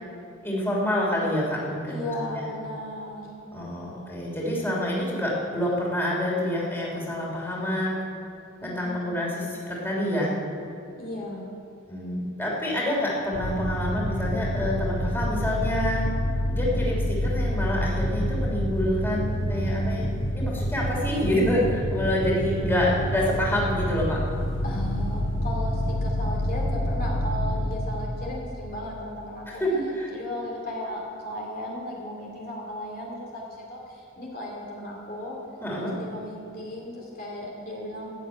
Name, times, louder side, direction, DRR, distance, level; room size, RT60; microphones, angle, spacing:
voice 1, 0.4-2.5 3.5-8.0 8.6-10.3 11.9-16.1 16.5-20.0 20.3-24.2 29.5-30.1 35.6-35.9, left 1 dB, 10° left, -4 dB, 3.1 m, -27 dB
voice 2, 1.9-3.3 8.6-9.2 11.0-11.5 24.6-29.6 30.1-35.4 35.8-38.1, left 1 dB, 45° left, -3 dB, 2.6 m, -36 dB
sound 1, 13.3-28.5, equal, 65° left, 1.3 m, -28 dB
14.5 x 8.4 x 9.0 m, 2.8 s
head